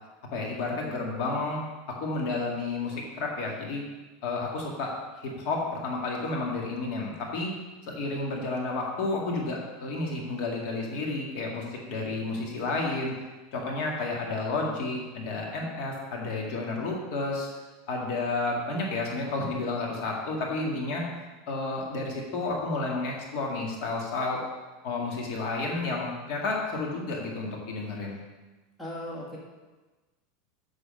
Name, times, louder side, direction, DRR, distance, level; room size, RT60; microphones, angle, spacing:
voice 1, 0.3-1.6 2.0-3.8 4.2-7.5 7.9-13.1 13.5-17.5 17.9-21.0 21.5-24.4 24.8-28.2, left 3 dB, 50° left, -1 dB, 2.0 m, -31 dB
voice 2, 28.8-29.4, equal, 5° left, -5 dB, 1.6 m, -37 dB
7.6 x 6.2 x 5.3 m, 1.2 s
supercardioid pair, 160°, 0 cm